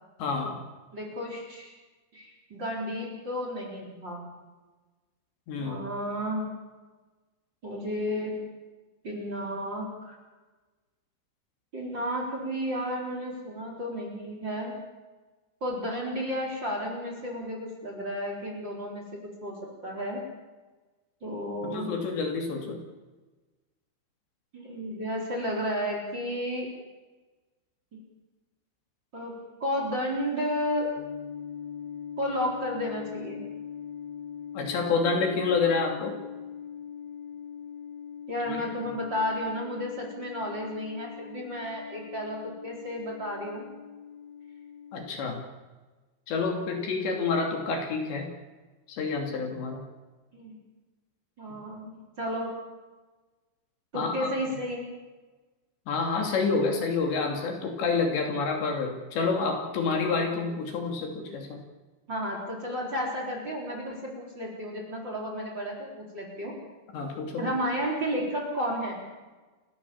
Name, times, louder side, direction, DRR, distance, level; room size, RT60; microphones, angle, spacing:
voice 1, 0.2-0.6 5.5-5.8 21.6-22.8 34.5-36.2 38.5-38.6 44.9-45.4 46.3-48.3 48.9-49.8 53.9-54.3 55.9-61.6 66.9-67.4, left 4 dB, 65° left, 2 dB, 4.8 m, -28 dB
voice 2, 0.9-1.7 2.1-4.3 5.6-6.5 7.6-8.4 9.0-10.2 11.7-14.7 15.6-20.2 21.2-22.0 24.5-26.7 29.1-30.9 32.2-33.5 38.3-43.6 50.3-50.6 51.4-52.5 53.9-54.9 62.1-66.5 67.4-69.0, equal, 25° right, 0 dB, 4.4 m, -32 dB
sound 1, 31.0-45.1, left 8 dB, 85° left, 2.3 m, -42 dB
29.0 x 15.5 x 7.2 m, 1.2 s
omnidirectional pair, 5.6 m